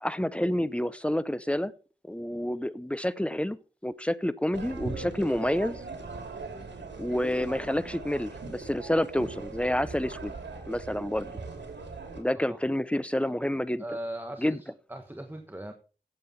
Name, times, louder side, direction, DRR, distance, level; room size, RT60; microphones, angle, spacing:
voice 1, 0.0-1.7 2.1-3.6 3.8-5.8 7.0-10.3 10.7-11.3 12.2-13.8 14.4-14.6, left 1 dB, 5° left, 16 dB, 0.7 m, -29 dB
sound 1, 4.5-12.2, right 3 dB, 85° right, 2.9 m, -40 dB
voice 2, 13.8-15.7, right 1 dB, 10° right, 6 dB, 1.3 m, -39 dB
15.0 x 7.7 x 4.2 m, 0.37 s
wide cardioid pair, 60°, 18 cm